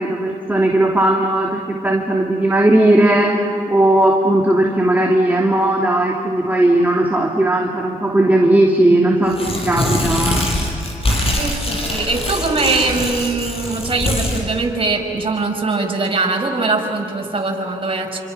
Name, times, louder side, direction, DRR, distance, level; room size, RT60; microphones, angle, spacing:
voice 1, 0.0-9.3 9.6-10.4, right 1 dB, 10° right, -2 dB, 3.2 m, -16 dB
Tearing, 9.3-14.4, left 1 dB, 40° left, 7.1 m, -22 dB
voice 2, 11.4-18.2, right 3 dB, 35° right, 1 dB, 5.6 m, -21 dB
28.0 x 26.0 x 6.0 m, 2.9 s
cardioid pair, 70°, 15 cm